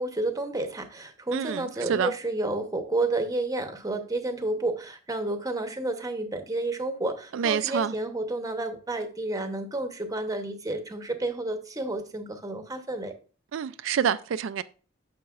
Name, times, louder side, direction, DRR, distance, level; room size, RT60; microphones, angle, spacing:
voice 1, 0.0-13.1, right 2 dB, 20° right, 0.9 m, -30 dB
voice 2, 1.3-2.1 7.3-7.9 13.5-14.6, right 8 dB, 90° right, 0.4 m, -27 dB
9.4 x 6.7 x 2.4 m
head